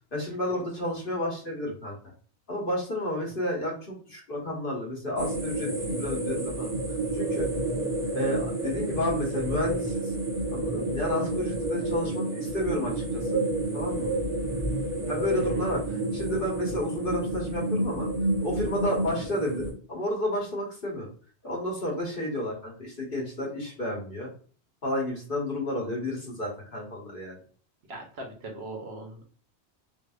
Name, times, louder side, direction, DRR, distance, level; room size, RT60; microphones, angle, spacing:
voice 1, 0.1-1.9 2.5-6.7 7.1-7.5 8.1-10.1 10.5-13.2 13.7-14.1 15.1-18.1 18.4-21.1 21.4-24.3 24.8-27.4, left 1 dB, 55° left, -2 dB, 1.2 m, -31 dB
sound 1, 5.2-19.7, right 2 dB, 35° right, 0.8 m, -30 dB
voice 2, 27.9-29.2, right 2 dB, 70° right, 1 dB, 1.0 m, -40 dB
3.2 x 2.8 x 2.3 m, 0.41 s
omnidirectional pair, 1.2 m